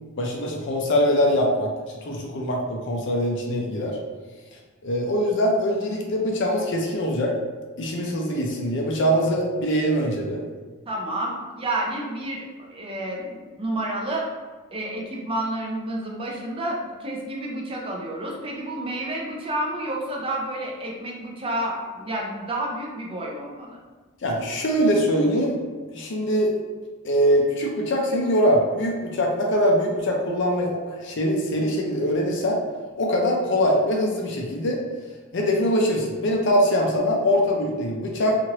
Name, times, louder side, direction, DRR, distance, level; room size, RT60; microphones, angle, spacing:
voice 1, 0.2-1.7 2.0-4.0 4.8-7.3 7.8-10.4 24.2-25.6 25.9-26.5 27.0-32.6 33.0-34.8 35.3-38.4, equal, 60° left, 0 dB, 0.5 m, -23 dB
voice 2, 10.9-14.3 14.7-23.8, right 1 dB, 25° right, -1 dB, 0.5 m, -30 dB
3.0 x 2.5 x 2.9 m, 1.4 s
head